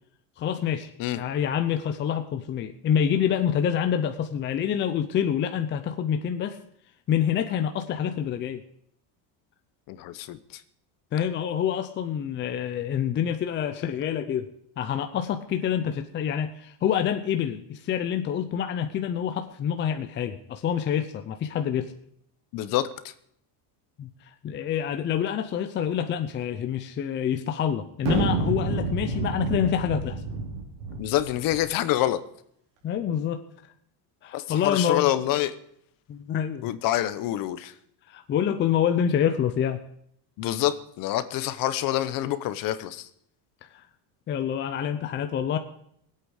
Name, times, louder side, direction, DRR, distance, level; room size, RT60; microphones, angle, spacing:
voice 1, 0.4-0.9 1.2-6.6 7.1-8.6 11.1-14.5 14.8-21.9 24.0-24.1 24.4-30.2 32.8-33.4 34.2-35.1 36.1-36.7 38.1-39.8 43.7-43.8 44.3-45.6, left 9 dB, 25° left, 7 dB, 0.6 m, -27 dB
voice 2, 9.9-10.6 22.5-23.1 31.0-32.2 34.3-35.5 36.6-37.7 40.4-43.1, left 13 dB, 45° left, 13 dB, 1.0 m, -27 dB
sound 1, 28.0-31.6, right 4 dB, 65° right, 3.8 m, -29 dB
22.5 x 8.5 x 4.8 m, 0.69 s
cardioid pair, 175°, 46 cm